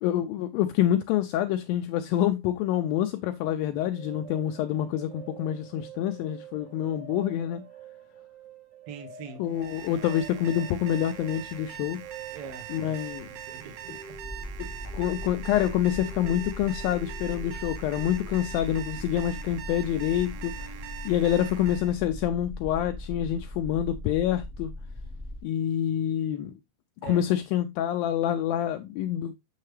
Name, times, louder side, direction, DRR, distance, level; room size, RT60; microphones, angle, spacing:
voice 1, 0.0-7.6 9.4-12.0 12.7-13.3 14.6-20.7 21.1-24.7 25.4-26.5 27.0-29.3, left 11 dB, 85° left, 2.0 m, -27 dB
sound 1, 4.0-21.4, right 7 dB, 50° right, 1.9 m, -48 dB
voice 2, 8.9-9.5 12.3-14.2 27.0-27.2, right 6 dB, 70° right, 1.4 m, -43 dB
Alarm, 9.5-22.0, right 10 dB, 85° right, 1.6 m, -43 dB
sound 2, 14.1-25.4, left 1 dB, 35° right, 0.8 m, -39 dB
6.6 x 6.4 x 3.2 m
omnidirectional pair, 4.6 m